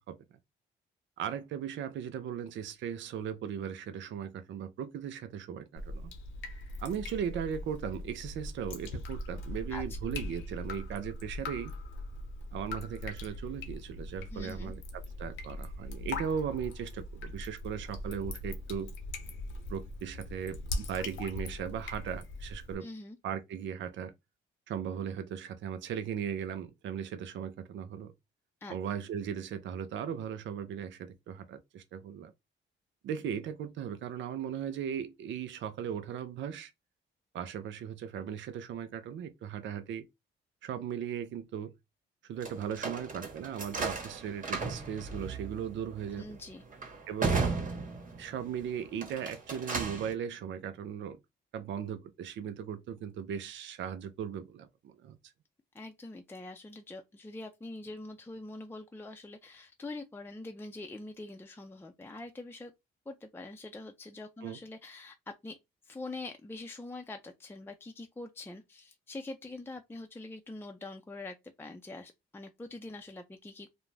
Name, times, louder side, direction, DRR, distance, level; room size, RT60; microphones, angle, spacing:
voice 1, 1.2-6.1 6.8-11.7 12.5-18.9 19.7-22.9 23.2-24.1 24.7-28.1 28.7-32.3 33.0-36.7 37.3-40.0 40.6-41.7 42.3-46.4 47.1-47.5 48.2-51.2 51.5-55.2 64.4-64.6, right 8 dB, 65° right, 0.5 m, -37 dB
Drip, 5.8-22.7, left 2 dB, 75° left, 0.8 m, -41 dB
voice 2, 14.3-14.7 22.8-23.2 28.6-28.8 46.2-46.6 55.7-62.7 63.1-65.6 65.8-73.7, left 2 dB, 10° left, 0.5 m, -44 dB
sound 1, 42.4-48.5 48.9-50.1, right 4 dB, 40° right, 1.1 m, -35 dB
2.5 x 2.1 x 3.1 m
supercardioid pair, 65°, 20 cm